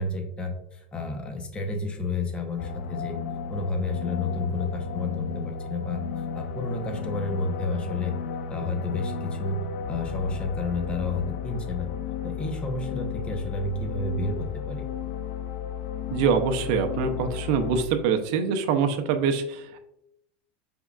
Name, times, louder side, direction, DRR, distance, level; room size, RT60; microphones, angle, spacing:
voice 1, 0.0-3.2 3.5-6.0 6.3-8.2 8.5-11.9 12.2-14.9, left 2 dB, 20° left, 4 dB, 0.8 m, -30 dB
sound 1, 2.6-17.8, left 7 dB, 75° left, 0.4 m, -34 dB
voice 2, 16.1-19.8, right 6 dB, 65° right, 6 dB, 0.6 m, -24 dB
5.2 x 3.5 x 2.4 m, 0.83 s
supercardioid pair, 130°, 5 cm